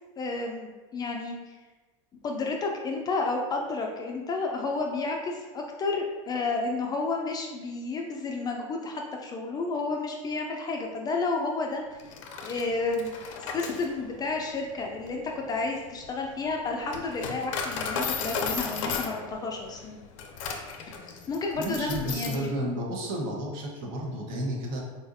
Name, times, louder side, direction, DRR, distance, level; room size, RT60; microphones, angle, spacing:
voice 1, 0.2-1.6 2.2-12.0 12.4-13.2 13.5-20.0 20.9-21.0 21.3-22.8, left 3 dB, 25° left, 1 dB, 0.4 m, -31 dB
Coin (dropping), 12.0-22.5, left 5 dB, 75° left, 0.5 m, -35 dB
voice 2, 21.6-24.8, right 1 dB, 55° right, -2 dB, 0.9 m, -32 dB
3.9 x 2.4 x 2.6 m, 1.3 s
supercardioid pair, 115°, 17 cm